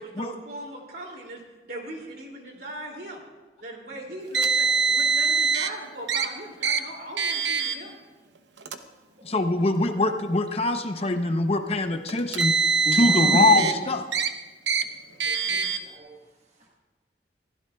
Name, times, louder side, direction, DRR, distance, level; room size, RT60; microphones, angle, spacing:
voice 1, 0.0-1.4 1.7-3.2 3.6-8.0, right 1 dB, 60° right, 0 dB, 2.8 m, -39 dB
Car, 4.3-5.7 6.1-6.3 6.6-6.8 7.2-7.7 8.6-8.8 9.7-9.8 12.1-13.7 14.1-14.3 14.7-14.8 15.2-15.8, right 5 dB, 80° right, 0.8 m, -23 dB
voice 2, 9.2-12.5 12.9-14.0, left 2 dB, 35° left, 6 dB, 0.7 m, -23 dB
voice 3, 12.8-13.7 15.3-16.2, equal, 40° right, -2 dB, 1.3 m, -33 dB
22.5 x 15.5 x 2.4 m, 1.2 s
head